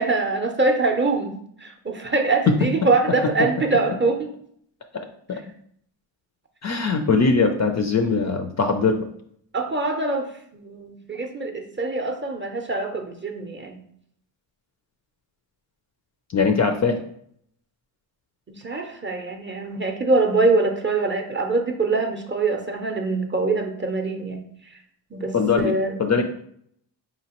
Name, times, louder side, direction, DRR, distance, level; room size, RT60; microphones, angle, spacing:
voice 1, 0.0-1.3 1.6-4.3 9.5-10.3 10.5-13.8 18.5-24.4 25.1-26.0, right 3 dB, 25° right, 3 dB, 0.6 m, -24 dB
voice 2, 2.5-3.5 5.3-5.4 6.6-9.1 16.3-17.0 25.3-26.2, left 4 dB, 40° left, 5 dB, 0.4 m, -21 dB
4.8 x 2.9 x 2.9 m, 0.66 s
cardioid pair, 95°, 48 cm